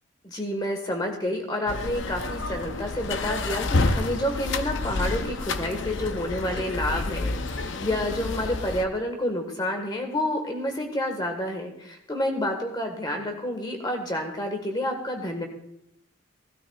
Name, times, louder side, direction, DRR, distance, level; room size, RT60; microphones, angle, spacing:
voice 1, 0.2-15.5, left 1 dB, 20° left, 4 dB, 1.5 m, -29 dB
sound 1, 1.7-8.8, left 3 dB, 55° left, 0.6 m, -29 dB
16.5 x 12.5 x 2.4 m, 0.78 s
head